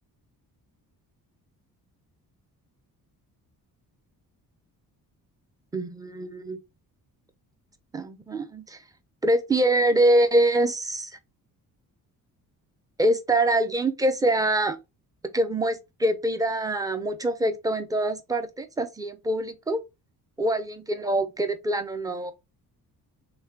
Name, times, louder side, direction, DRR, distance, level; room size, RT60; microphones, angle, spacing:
voice 1, 5.7-6.6 7.9-8.8 9.2-11.1 13.0-14.8 15.3-19.8 20.4-22.3, right 1 dB, 10° right, 0.6 m, -24 dB
3.9 x 3.2 x 2.8 m
cardioid pair, 110°, 37 cm